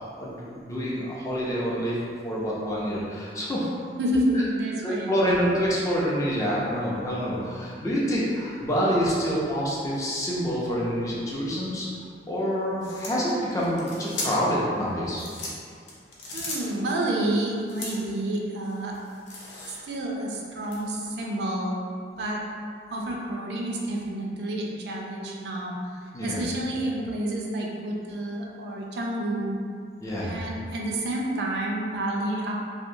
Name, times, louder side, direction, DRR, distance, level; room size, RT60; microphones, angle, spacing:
voice 1, 0.2-2.0 2.2-3.7 4.3-4.4 4.8-11.9 12.3-15.2 26.1-26.4 30.0-30.4, equal, 20° left, -6 dB, 0.4 m, -27 dB
voice 2, 4.0-5.4 16.3-19.0 19.7-21.8 22.2-22.4 22.9-29.6 30.2-32.5, right 1 dB, 70° right, -2 dB, 0.4 m, -29 dB
sound 1, 12.8-14.6 15.1-17.0 17.7-18.2 18.6-20.0 20.6-20.8, left 2 dB, 80° left, 0.6 m, -37 dB
2.7 x 2.0 x 2.6 m, 2.2 s
head